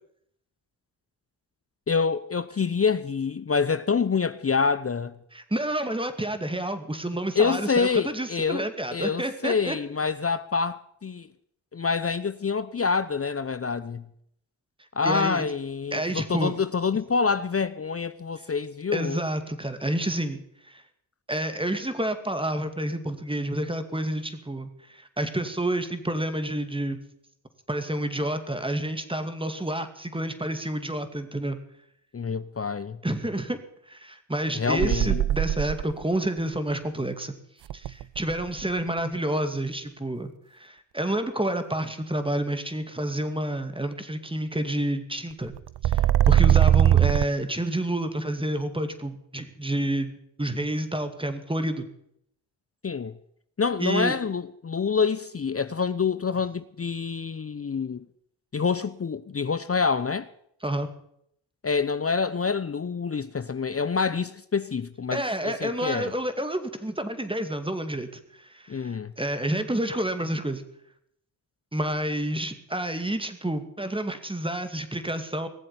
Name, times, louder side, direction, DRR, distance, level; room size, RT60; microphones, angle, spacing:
voice 1, 1.9-5.1 7.4-8.6 8.9-11.3 11.7-14.0 15.0-19.2 32.1-33.0 34.6-35.2 52.8-53.1 53.6-58.0 58.5-60.3 61.6-66.1 68.7-69.1, left 5 dB, 30° left, 0.7 m, -26 dB
voice 2, 5.3-9.8 15.0-15.5 15.9-16.5 18.9-20.8 21.3-27.0 27.7-31.6 33.0-33.6 33.9-37.3 37.7-45.5 45.8-51.9 53.8-54.1 60.6-60.9 65.1-70.6 71.7-75.5, right 1 dB, 10° right, 2.4 m, -29 dB
sound 1, 34.8-36.0 37.7-38.6 45.5-47.3, right 12 dB, 55° right, 0.6 m, -20 dB
19.5 x 7.6 x 9.8 m
cardioid pair, 55°, 48 cm